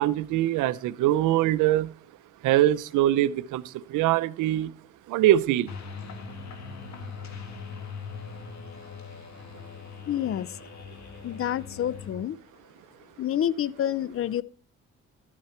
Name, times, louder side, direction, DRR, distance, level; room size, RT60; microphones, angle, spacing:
voice 1, 0.0-1.9 2.4-3.6 3.9-4.7 5.1-5.7, right 13 dB, 90° right, 17 dB, 0.6 m, -23 dB
sound 1, 5.7-12.1, left 5 dB, 65° left, 1.8 m, -41 dB
voice 2, 10.1-10.6 11.2-12.4 13.2-14.4, left 10 dB, 50° left, 21 dB, 0.5 m, -28 dB
12.5 x 8.9 x 4.3 m, 0.43 s
cardioid pair, 90°, 30 cm